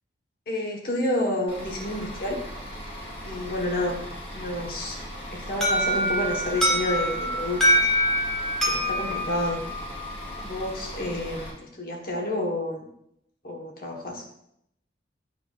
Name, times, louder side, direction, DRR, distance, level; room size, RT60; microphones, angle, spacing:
voice 1, 0.5-2.4 3.2-4.0 4.3-5.0 5.3-7.9 8.7-9.6 10.4-12.9 13.4-14.2, left 1 dB, 50° left, 0 dB, 1.2 m, -29 dB
Bus / Idling, 1.5-11.5, equal, 80° left, 2.6 m, -38 dB
Alarm, 5.6-10.4, equal, ahead, 1.3 m, -25 dB
8.5 x 4.8 x 2.4 m, 0.75 s
head